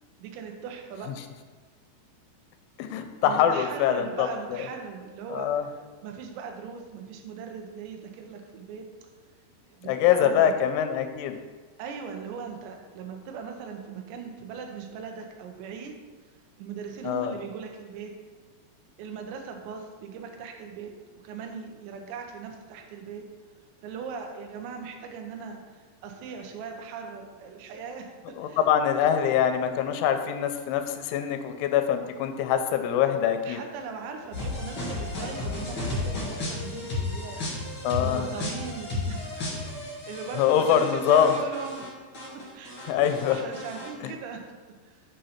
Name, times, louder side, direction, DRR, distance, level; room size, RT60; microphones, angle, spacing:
voice 1, 0.2-1.1 3.2-8.9 9.7-10.6 11.8-16.0 16.6-18.1 19.0-20.9 21.2-23.2 23.8-28.6 33.4-37.7 38.0-42.0 42.5-42.8 43.3-44.5 44.8-45.0, right 5 dB, 80° right, 3 dB, 2.8 m, -39 dB
voice 2, 2.8-4.6 5.3-5.7 9.8-11.4 17.0-17.4 28.4-33.6 37.8-38.3 40.4-41.4 42.9-43.4 44.0-44.1, left 9 dB, 90° left, 7 dB, 2.9 m, -24 dB
sound 1, 34.3-41.9 42.1-43.9, left 2 dB, 60° left, 1.2 m, -33 dB
7.5 x 2.7 x 5.6 m, 1.3 s
omnidirectional pair, 5.3 m